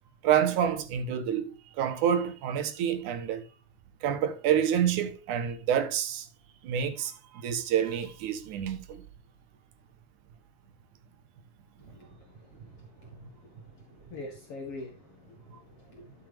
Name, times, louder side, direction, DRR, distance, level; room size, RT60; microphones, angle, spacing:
voice 1, 0.2-3.5 4.0-6.3 6.6-7.1 7.4-9.0, right 9 dB, 75° right, 2.5 m, -28 dB
voice 2, 11.8-12.6 13.0-13.6 14.0-16.3, left 2 dB, 50° left, 2.5 m, -45 dB
11.5 x 7.0 x 3.4 m
omnidirectional pair, 3.7 m